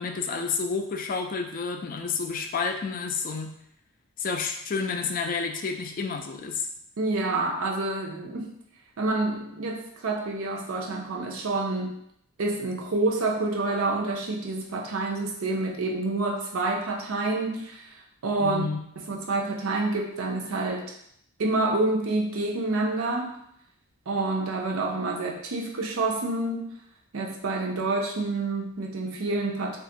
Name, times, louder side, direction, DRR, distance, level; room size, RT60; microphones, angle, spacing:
voice 1, 0.0-3.5 4.2-6.7 18.4-18.8, left 5 dB, 40° left, 4 dB, 0.3 m, -30 dB
voice 2, 7.0-8.5 9.0-12.0 12.4-18.6 19.1-20.9 21.4-23.3 24.1-26.7 27.1-29.8, right 2 dB, 85° right, 1 dB, 0.6 m, -28 dB
2.5 x 2.4 x 3.8 m, 0.72 s
head